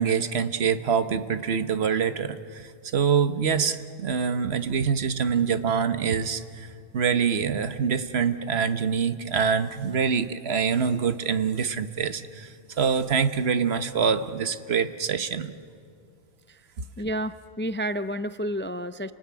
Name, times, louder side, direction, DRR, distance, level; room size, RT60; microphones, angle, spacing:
voice 1, 0.0-15.6 16.8-16.9, right 6 dB, 75° right, 11 dB, 1.3 m, -25 dB
voice 2, 17.0-19.1, equal, 15° left, 12 dB, 0.4 m, -30 dB
28.5 x 19.5 x 9.6 m, 2.3 s
omnidirectional pair, 1.1 m